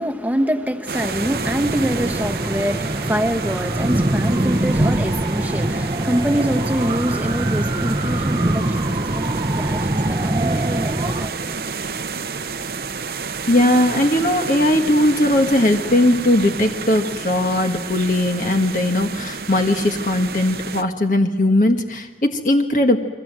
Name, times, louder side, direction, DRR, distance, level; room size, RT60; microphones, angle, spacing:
voice 1, 0.0-11.8, equal, 10° right, 8 dB, 1.2 m, -25 dB
sound 1, 0.9-11.3, right 1 dB, 25° right, 0.8 m, -23 dB
sound 2, 0.9-20.8, right 4 dB, 60° right, 0.9 m, -30 dB
voice 2, 13.5-23.0, left 1 dB, 45° left, 4 dB, 1.6 m, -18 dB
29.5 x 23.0 x 7.5 m, 1.1 s
head